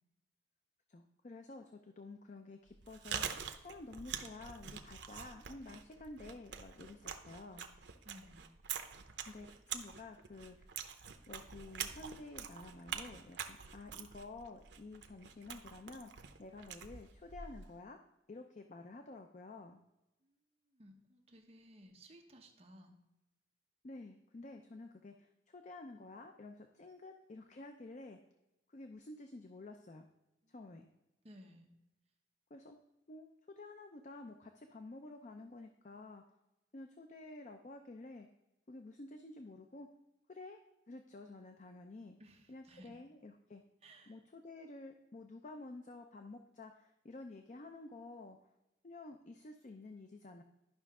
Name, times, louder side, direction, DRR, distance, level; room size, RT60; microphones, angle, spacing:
voice 1, 0.9-7.7 9.3-10.9 11.3-18.0 18.3-19.8 23.8-28.2 28.7-30.1 30.5-30.9 32.5-32.8 33.1-33.3 33.6-36.2 36.7-38.3 38.7-39.9 40.3-40.6 40.9-42.2 42.5-43.6 44.1-48.4 48.8-50.4, left 2 dB, 40° left, 5 dB, 0.5 m, -51 dB
Chewing mastication, 2.7-17.8, right 8 dB, 80° right, 0.7 m, -46 dB
voice 2, 8.0-8.5 20.2-20.4 20.7-23.0 30.4-30.8 31.2-31.7 42.2-43.0 43.8-44.2, equal, 35° right, 2 dB, 1.0 m, -58 dB
11.5 x 5.6 x 3.6 m, 0.94 s
head